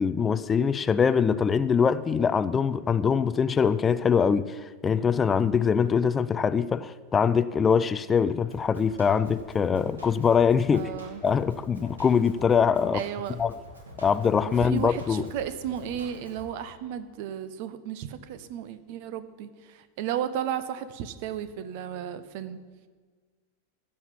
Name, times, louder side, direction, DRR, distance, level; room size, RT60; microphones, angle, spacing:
voice 1, 0.0-10.9 11.2-13.0 13.4-13.5 14.0-15.3, left 6 dB, 20° left, 0.3 m, -23 dB
Drum kit, 8.5-16.5, left 1 dB, 75° right, 2.3 m, -47 dB
voice 2, 10.7-11.2 12.9-13.4 14.5-22.6, right 9 dB, 45° right, 0.8 m, -34 dB
15.5 x 5.5 x 7.3 m
figure-of-eight pair, 90°, 0 cm